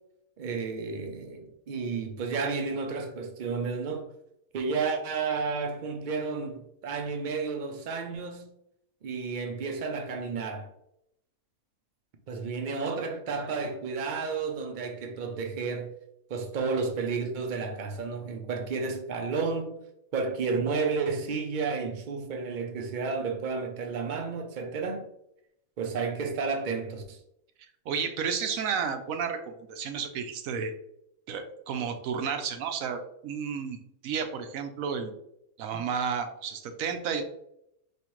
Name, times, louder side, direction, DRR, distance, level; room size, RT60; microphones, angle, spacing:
voice 1, 0.4-4.1 4.5-8.5 9.0-10.7 12.3-15.9 16.3-19.8 20.1-25.1 25.8-27.2 35.7-35.8, right 4 dB, 50° right, 0.6 m, -32 dB
voice 2, 27.9-30.7 31.3-33.8 34.0-35.1 35.6-37.2, right 6 dB, 75° right, 1.0 m, -32 dB
5.0 x 3.1 x 3.0 m
omnidirectional pair, 1.5 m